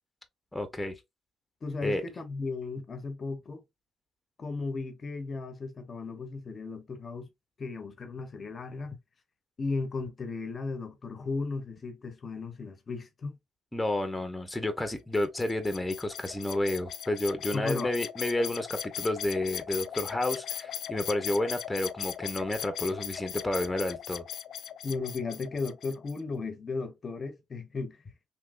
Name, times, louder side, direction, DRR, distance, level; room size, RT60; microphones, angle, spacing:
voice 1, 0.5-1.0 1.8-2.0 13.7-24.3, left 1 dB, 10° left, 0.8 m, -30 dB
voice 2, 1.6-3.6 4.4-7.3 7.6-9.0 9.6-13.4 17.5-17.9 24.8-28.0, left 3 dB, 40° left, 0.7 m, -35 dB
sound 1, 15.1-26.2, left 9 dB, 70° left, 0.3 m, -39 dB
3.5 x 2.8 x 2.5 m
cardioid pair, 90°, 0 cm